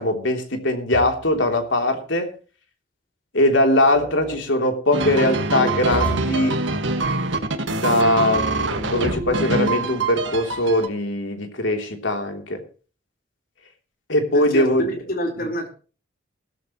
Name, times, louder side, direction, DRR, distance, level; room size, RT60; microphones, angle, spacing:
voice 1, 0.0-2.3 3.3-6.6 7.7-12.6 14.1-14.9, left 1 dB, 80° left, 4 dB, 3.2 m, -21 dB
sound 1, 0.9-1.4 3.9-4.4 5.9-6.5 8.9-9.6, right 1 dB, 5° left, 4.6 m, -31 dB
sound 2, 4.9-10.9, right 3 dB, 75° right, 1.9 m, -24 dB
voice 2, 14.3-15.7, equal, 50° left, 3 dB, 4.2 m, -28 dB
17.0 x 14.0 x 3.1 m, 0.38 s
head